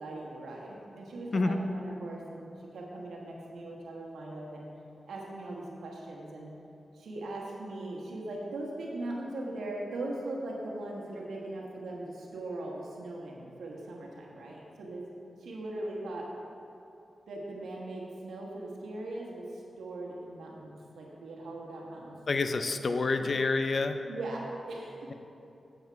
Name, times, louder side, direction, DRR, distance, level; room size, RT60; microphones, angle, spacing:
voice 1, 0.0-4.7 5.1-6.5 6.9-15.1 15.4-16.3 17.3-22.2 22.9-23.1 24.1-25.1, right 2 dB, 85° right, -2 dB, 1.3 m, -40 dB
voice 2, 22.3-24.0, left 3 dB, 60° left, 8 dB, 0.5 m, -28 dB
8.1 x 7.2 x 4.6 m, 2.8 s
cardioid pair, 45°, 0 cm